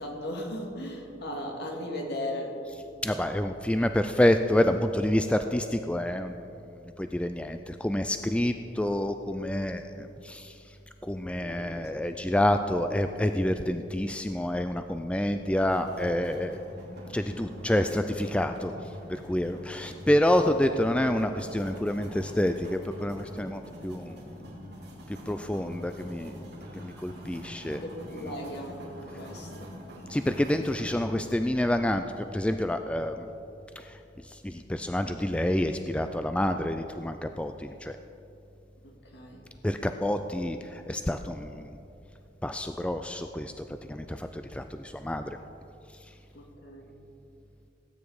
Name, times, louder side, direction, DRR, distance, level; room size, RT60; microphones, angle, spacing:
voice 1, 0.0-2.6 11.4-12.3 27.8-29.7 38.8-39.4 40.3-40.4 46.3-46.9, left 1 dB, 60° left, 1 dB, 2.1 m, -37 dB
voice 2, 3.0-6.4 7.0-10.6 11.0-16.6 17.1-18.7 19.1-24.2 25.3-27.8 28.2-28.3 30.1-33.3 33.8-34.0 34.2-38.0 39.6-41.7 42.4-45.3, left 1 dB, 5° left, 7 dB, 0.3 m, -28 dB
sound 1, 15.7-30.8, equal, 60° right, 3.6 m, -45 dB
18.0 x 9.2 x 4.9 m, 2.8 s
head